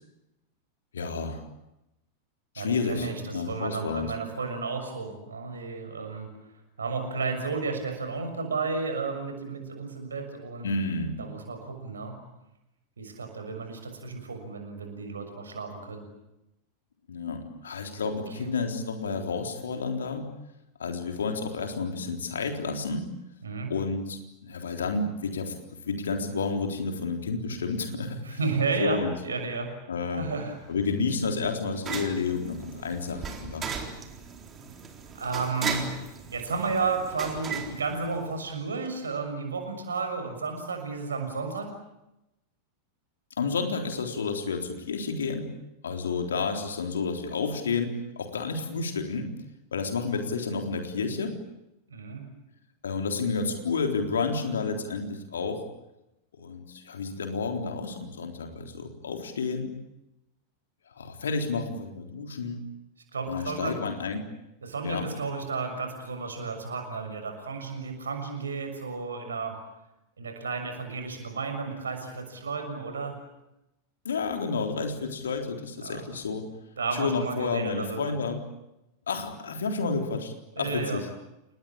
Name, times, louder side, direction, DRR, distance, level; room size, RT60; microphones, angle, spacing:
voice 1, 0.9-1.4 2.5-4.2 10.6-11.2 17.1-20.3 20.8-23.1 23.7-25.5 25.9-28.4 28.8-29.1 29.9-30.3 30.7-33.7 43.4-45.5 45.8-49.3 49.7-51.4 52.8-55.6 56.4-59.7 61.0-62.6 63.3-64.2 64.8-65.1 74.1-76.5 76.9-78.4 79.1-81.1, left 4 dB, 65° left, 5 dB, 3.8 m, -30 dB
voice 2, 2.6-6.3 6.8-10.7 11.2-12.1 13.0-16.0 18.4-18.5 23.4-23.7 28.2-29.7 30.1-30.5 35.2-35.8 36.3-41.7 51.9-52.2 63.1-63.8 64.6-69.5 70.2-73.2 75.8-76.0 76.8-78.1 80.5-81.0, right 4 dB, 70° right, 5 dB, 6.6 m, -32 dB
sound 1, 30.3-38.6, right 6 dB, 25° right, 4.1 m, -38 dB
29.5 x 20.0 x 8.9 m, 0.91 s
figure-of-eight pair, 90°, 0 cm